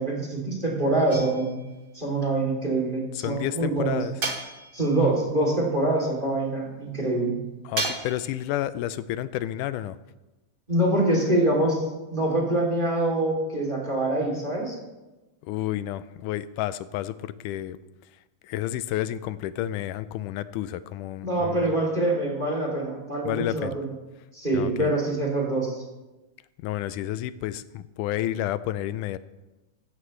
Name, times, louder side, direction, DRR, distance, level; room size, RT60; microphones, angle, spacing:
voice 1, 0.0-1.6 1.9-4.0 4.7-7.4 10.7-14.8 21.2-23.8 24.3-25.8, right 2 dB, 15° right, -2 dB, 3.0 m, -25 dB
sound 1, 1.1-1.8 4.2-5.0 7.8-8.4, right 3 dB, 50° right, 0.6 m, -32 dB
voice 2, 3.2-4.1 7.7-10.0 15.4-17.8 18.4-21.7 23.3-23.8 24.5-24.9 26.6-29.2, left 13 dB, 90° left, 15 dB, 2.1 m, -30 dB
14.5 x 14.5 x 3.3 m, 1.1 s
omnidirectional pair, 3.6 m